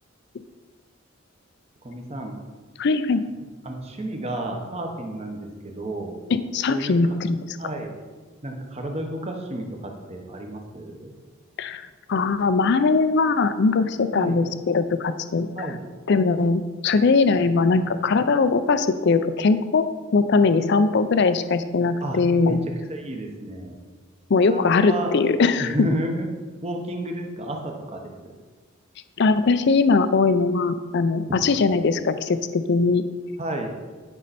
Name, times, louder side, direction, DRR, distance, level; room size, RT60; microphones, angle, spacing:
voice 1, 1.8-2.3 3.6-6.1 6.7-7.2 7.6-7.9 8.4-11.1 14.1-14.4 15.5-15.8 22.0-22.6 22.9-23.7 24.5-25.1 25.6-26.3 26.6-28.3 33.4-33.7, right 1 dB, 30° right, 2 dB, 1.0 m, -31 dB
voice 2, 2.8-3.2 6.3-7.6 11.6-15.7 16.1-19.8 20.1-22.6 24.3-25.7 29.2-33.0, left 4 dB, 55° left, 11 dB, 0.5 m, -21 dB
10.5 x 5.6 x 4.2 m, 1.4 s
head